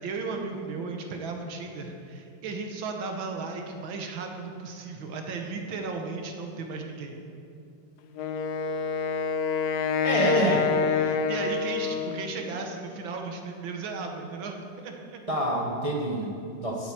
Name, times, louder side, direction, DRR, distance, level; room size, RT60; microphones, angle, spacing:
voice 1, 0.0-7.2 10.1-10.7 11.0-15.2, right 4 dB, 75° right, 3 dB, 1.8 m, -35 dB
Wind instrument woodwind instrument, 8.1-12.4, left 5 dB, 70° left, 1.1 m, -27 dB
voice 2, 10.0-10.6 15.3-16.9, right 1 dB, 40° right, -1 dB, 0.5 m, -27 dB
8.6 x 7.8 x 7.4 m, 2.6 s
omnidirectional pair, 2.2 m